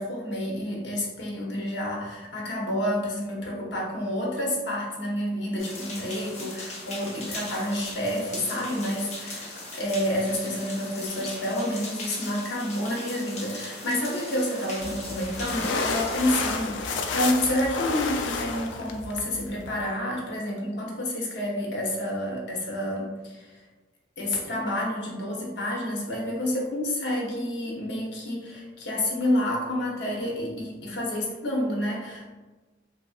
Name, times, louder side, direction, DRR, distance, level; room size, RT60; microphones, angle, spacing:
voice 1, 0.0-23.5 24.2-32.3, left 1 dB, 70° left, -2 dB, 0.8 m, -29 dB
sound 1, 5.6-16.3, left 2 dB, 40° left, 0.7 m, -39 dB
sound 2, 14.8-19.8, left 4 dB, 85° left, 0.3 m, -31 dB
3.1 x 2.6 x 2.4 m, 1.2 s
head